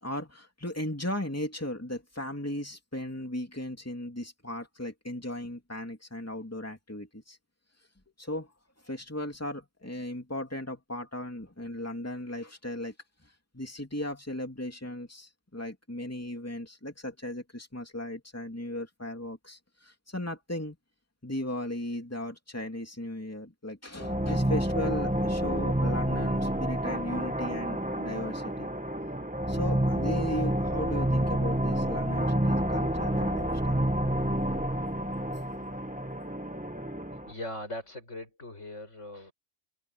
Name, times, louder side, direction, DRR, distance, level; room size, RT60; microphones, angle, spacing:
voice 1, 0.0-7.4 8.2-8.5 8.8-12.9 13.2-20.7 21.2-28.7 29.5-33.8 35.6-35.7, left 1 dB, 10° left, 2.9 m, -37 dB
sound 1, 24.0-37.3, right 1 dB, 5° right, 1.4 m, -29 dB
voice 2, 37.3-39.3, left 1 dB, 90° left, 8.0 m, -40 dB
omnidirectional pair, 1.2 m